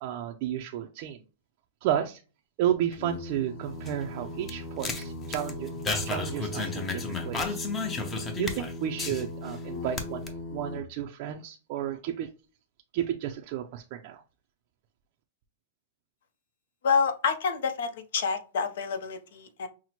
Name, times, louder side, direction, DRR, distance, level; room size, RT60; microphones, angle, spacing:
voice 1, 0.0-1.2 1.8-2.2 2.6-5.7 6.0-7.6 8.4-12.3 12.9-14.2, right 11 dB, 50° right, 0.4 m, -32 dB
Singing, 2.9-10.8, left 1 dB, 45° left, 1.3 m, -39 dB
sound 1, 3.6-9.6 9.9-10.3, left 4 dB, 20° left, 0.6 m, -33 dB
voice 2, 16.8-19.7, left 5 dB, 70° left, 0.7 m, -28 dB
5.7 x 2.1 x 2.9 m
hypercardioid pair, 140°, 0 cm